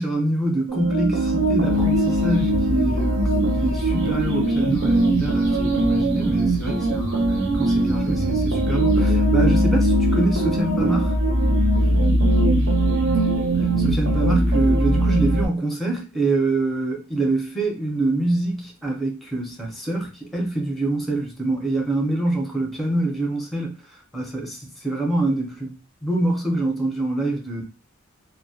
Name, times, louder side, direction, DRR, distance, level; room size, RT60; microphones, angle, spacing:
voice 1, 0.0-3.3 3.6-11.2 13.8-23.7 24.1-27.6, right 2 dB, ahead, 0.6 m, -25 dB
sound 1, 0.7-15.5, right 1 dB, 65° right, 0.8 m, -20 dB
2.1 x 2.1 x 2.7 m
head